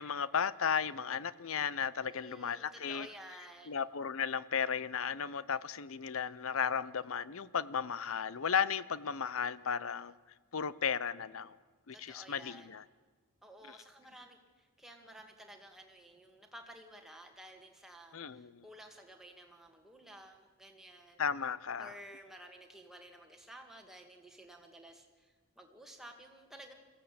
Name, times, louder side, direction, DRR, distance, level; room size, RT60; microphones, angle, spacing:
voice 1, 0.0-3.1 3.7-10.1 10.5-11.6 11.9-12.8 13.7-13.8 18.1-18.6 21.2-21.9, left 7 dB, 65° left, 18 dB, 0.6 m, -35 dB
voice 2, 2.1-3.8 11.9-12.7 13.4-21.2 21.8-26.7, right 1 dB, ahead, 2 dB, 2.1 m, -53 dB
22.5 x 15.0 x 8.6 m, 1.4 s
head